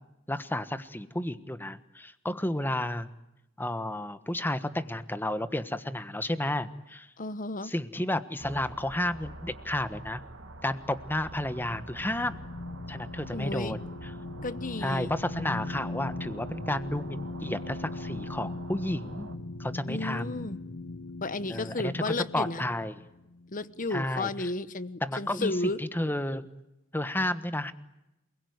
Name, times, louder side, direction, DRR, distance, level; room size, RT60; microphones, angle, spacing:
voice 1, 0.3-3.1 3.6-7.1 7.6-10.2 10.6-12.4 12.9-14.1 14.8-19.3 19.6-20.3 21.5-22.9 23.9-24.5 25.0-26.5 26.9-27.7, left 1 dB, 10° left, 12 dB, 1.3 m, -32 dB
voice 2, 7.2-7.7 13.3-13.8 14.4-15.1 19.9-20.6 21.2-22.7 23.5-25.8, left 2 dB, 40° left, 15 dB, 1.2 m, -33 dB
sound 1, 8.4-19.4, right 2 dB, 70° right, 3.0 m, -47 dB
sound 2, 10.4-24.0, left 2 dB, 75° left, 1.1 m, -40 dB
28.5 x 21.5 x 9.6 m, 0.90 s
head